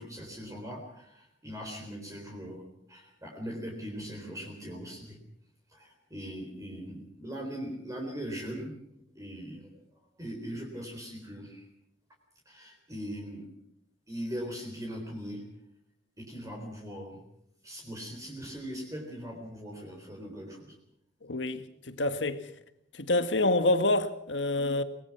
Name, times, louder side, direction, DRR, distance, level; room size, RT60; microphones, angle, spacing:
voice 1, 0.0-5.2 5.7-8.7 9.1-9.7 10.2-11.7 12.5-13.5 14.1-15.5 16.2-17.2 17.6-20.8, equal, 20° right, 4.0 m, -40 dB
voice 2, 21.2-22.4 22.9-24.8, left 2 dB, 90° left, 1.6 m, -27 dB
24.5 x 20.0 x 5.9 m
head